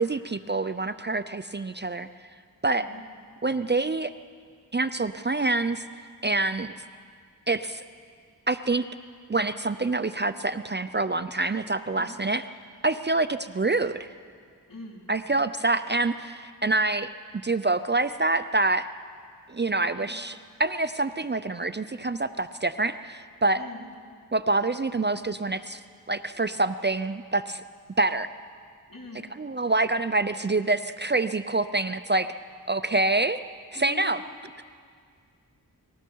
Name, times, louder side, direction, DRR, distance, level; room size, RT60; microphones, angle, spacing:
voice 1, 0.0-2.1 2.6-2.9 3.4-4.1 4.7-5.8 6.2-6.7 7.5-7.8 8.5-8.9 9.3-12.5 12.8-14.1 15.1-17.1 17.4-18.9 19.5-23.6 24.3-25.8 26.1-27.6 28.0-28.3 29.3-32.3 32.7-33.4 33.7-34.2, right 2 dB, 30° right, 11 dB, 0.6 m, -26 dB
voice 2, 14.7-15.1 20.0-20.1 23.5-23.8 28.9-29.3 33.7-34.1, left 2 dB, 60° left, -3 dB, 4.4 m, -42 dB
29.5 x 20.0 x 4.7 m, 2.1 s
wide cardioid pair, 50°, 38 cm